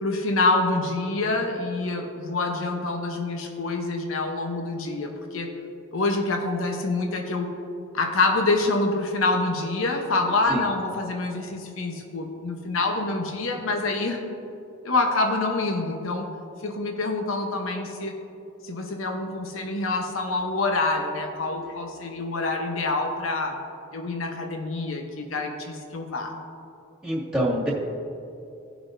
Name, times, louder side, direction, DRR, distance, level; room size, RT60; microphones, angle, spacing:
voice 1, 0.0-5.6 5.9-7.5 7.9-14.2 14.8-16.3 16.6-18.1 18.6-23.6 23.9-26.3, left 2 dB, 85° left, 3 dB, 0.9 m, -26 dB
voice 2, 27.0-27.7, equal, 5° right, -5 dB, 2.0 m, -26 dB
17.5 x 6.0 x 2.6 m, 2.7 s
head